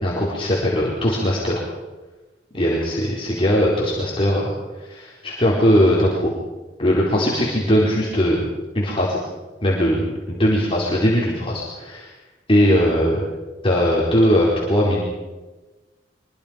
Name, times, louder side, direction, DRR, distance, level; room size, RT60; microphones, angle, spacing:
voice 1, 0.0-1.7 2.5-4.5 4.8-6.3 6.8-8.4 8.7-9.2 9.6-12.1 12.5-13.3 13.6-15.0, equal, 30° left, -5 dB, 4.4 m, -19 dB
24.5 x 23.5 x 5.3 m, 1.2 s
head